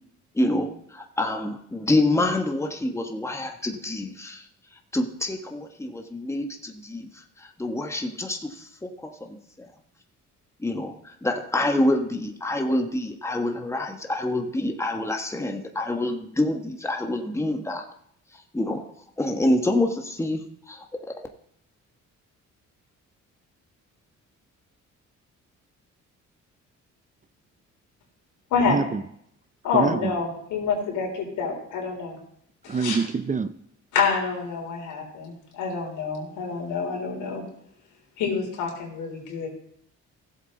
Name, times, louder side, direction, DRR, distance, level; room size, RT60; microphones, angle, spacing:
voice 1, 0.3-4.5 4.9-9.7 10.6-17.9 18.3-20.4 20.7-21.3, left 1 dB, 10° left, 3 dB, 1.4 m, -27 dB
voice 2, 28.7-29.0 29.7-30.1 32.7-33.5, right 4 dB, 25° right, 11 dB, 0.6 m, -25 dB
voice 3, 29.6-32.2 32.6-33.0 33.9-37.4 38.2-39.5, left 5 dB, 90° left, -1 dB, 3.9 m, -27 dB
16.0 x 7.6 x 3.9 m, 0.70 s
cardioid pair, 90°, 30 cm